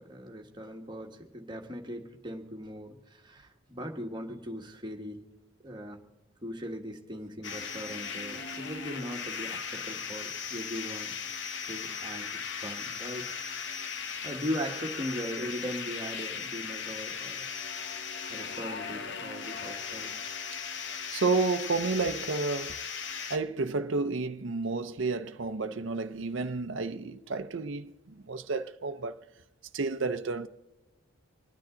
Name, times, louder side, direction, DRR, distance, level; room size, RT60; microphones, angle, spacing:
voice 1, 0.0-5.2 5.6-6.0 6.4-13.3 13.9-17.5 18.3-20.1, equal, 20° right, 1.5 m, -39 dB
sound 1, 7.4-23.4, left 6 dB, 55° left, 1.0 m, -37 dB
voice 2, 21.1-22.8 23.3-27.9 28.3-29.1 29.7-30.5, right 3 dB, 60° right, 0.6 m, -31 dB
25.0 x 9.9 x 3.8 m
head